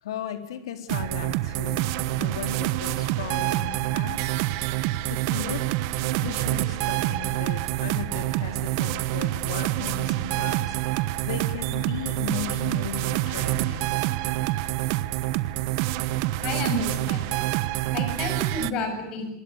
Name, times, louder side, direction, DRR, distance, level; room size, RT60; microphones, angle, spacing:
voice 1, 0.0-5.6 6.1-14.0, left 8 dB, 85° left, 8 dB, 4.0 m, -37 dB
sound 1, 0.9-18.7, right 16 dB, 40° right, 1.2 m, -27 dB
voice 2, 16.4-17.5 17.8-19.3, left 2 dB, 30° left, 7 dB, 7.6 m, -31 dB
26.0 x 21.0 x 9.7 m, 0.84 s
supercardioid pair, 175°, 2 cm